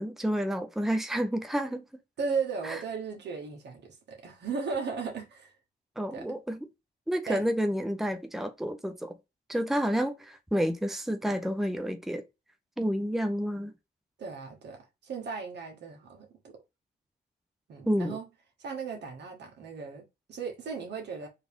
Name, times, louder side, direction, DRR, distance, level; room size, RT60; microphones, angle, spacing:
voice 1, 0.0-1.8 2.6-2.8 6.0-6.6 7.1-9.2 9.5-12.2 12.8-13.7 17.9-18.2, equal, ahead, 0.6 m, -29 dB
voice 2, 2.2-5.5 6.1-6.4 7.3-7.4 14.2-16.5 17.7-18.2 18.6-21.3, right 5 dB, 80° right, 1.8 m, -36 dB
4.2 x 3.0 x 3.6 m
cardioid pair, 105°, 18 cm